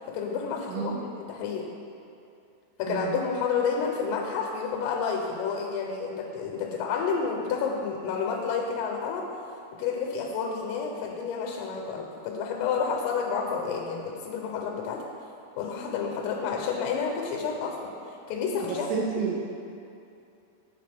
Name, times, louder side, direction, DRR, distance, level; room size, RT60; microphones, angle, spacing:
voice 1, 0.1-1.7 2.8-9.3 9.8-15.0 15.6-17.9 18.3-18.9, left 5 dB, 90° left, 0 dB, 3.3 m, -30 dB
voice 2, 0.7-1.0 2.9-3.1 18.6-19.4, right 6 dB, 85° right, -3 dB, 2.7 m, -30 dB
10.5 x 4.2 x 3.4 m, 2.6 s
omnidirectional pair, 5.7 m